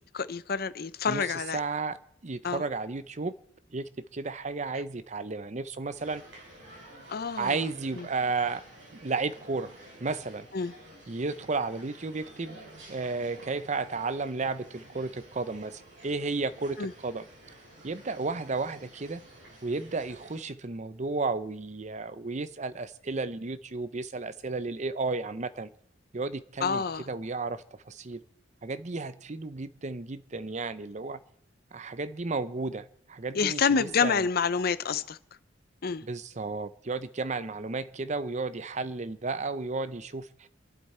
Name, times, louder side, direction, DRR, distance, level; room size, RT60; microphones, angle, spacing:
voice 1, 0.0-1.6 2.4-2.6 7.1-7.6 8.0-8.1 10.5-10.7 16.8-16.9 26.6-27.1 33.3-35.2 35.8-36.0, left 5 dB, 50° left, 0.6 m, -28 dB
voice 2, 1.5-2.0 2.2-3.3 3.7-6.2 7.4-8.6 9.0-9.7 10.0-10.5 11.1-12.6 12.9-17.2 17.8-19.2 19.6-25.7 26.1-28.2 28.6-31.2 31.7-34.3 36.0-40.5, right 3 dB, 40° right, 0.6 m, -33 dB
sound 1, 5.9-20.4, right 1 dB, 70° right, 5.5 m, -51 dB
28.0 x 11.5 x 4.3 m
head